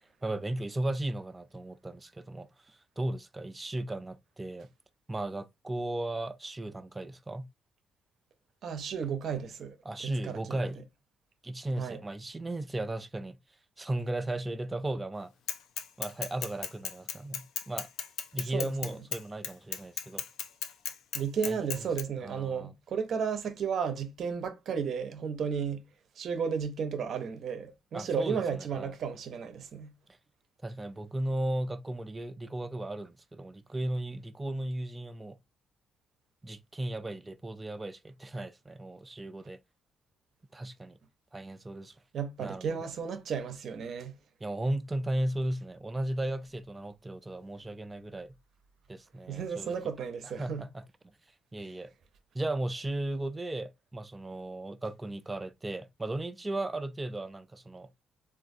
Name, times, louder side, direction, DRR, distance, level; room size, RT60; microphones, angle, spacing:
voice 1, 0.2-4.7 5.1-7.5 9.9-10.9 11.4-13.4 13.8-15.3 16.0-17.9 18.3-20.2 21.5-21.6 22.2-22.7 27.9-28.4 28.8-28.9 30.6-35.4 36.4-39.6 40.5-41.0 41.3-41.9 42.4-42.8 44.4-48.3 48.9-49.7 50.4-50.7 51.5-51.9 52.3-58.0, right 1 dB, 20° right, 0.4 m, -35 dB
voice 2, 8.6-9.8 10.0-10.7 11.8-12.0 18.4-19.0 21.1-25.9 26.2-30.0 42.1-44.2 49.3-50.7, right 6 dB, 65° right, 0.6 m, -33 dB
Bicycle / Mechanisms, 15.5-22.0, left 8 dB, 85° left, 0.5 m, -35 dB
3.6 x 2.4 x 2.6 m
cardioid pair, 90°, 0 cm